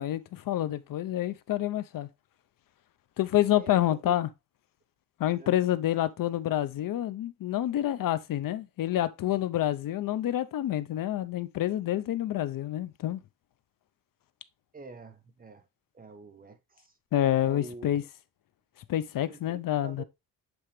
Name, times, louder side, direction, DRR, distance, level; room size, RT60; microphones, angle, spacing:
voice 1, 0.0-2.1 3.2-4.3 5.2-13.2 17.1-18.0 18.9-20.0, left 12 dB, 75° left, 0.7 m, -28 dB
voice 2, 3.6-4.1 5.3-5.5 14.7-15.7 15.9-16.9 17.4-18.1 19.3-20.0, right 2 dB, 25° right, 1.1 m, -46 dB
7.9 x 4.3 x 3.2 m
cardioid pair, 125°, 33 cm